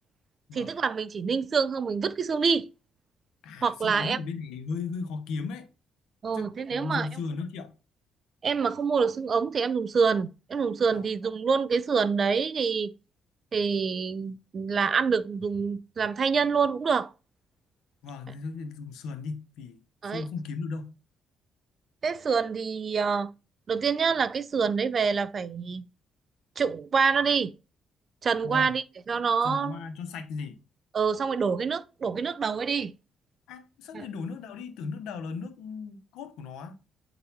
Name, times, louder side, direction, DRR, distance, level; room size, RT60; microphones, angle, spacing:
voice 1, 0.5-2.7 3.6-4.2 6.2-7.1 8.4-12.9 13.5-17.1 20.0-20.2 22.0-23.3 23.7-25.8 26.6-27.5 28.2-29.8 30.9-32.9 33.9-34.0, right 5 dB, 45° right, 0.4 m, -26 dB
voice 2, 3.4-5.7 6.3-7.7 10.9-11.1 18.0-19.8 20.0-20.9 28.4-28.7 29.4-30.6 33.5-36.8, left 4 dB, 90° left, 0.8 m, -36 dB
9.0 x 4.0 x 2.7 m
cardioid pair, 90°, 0 cm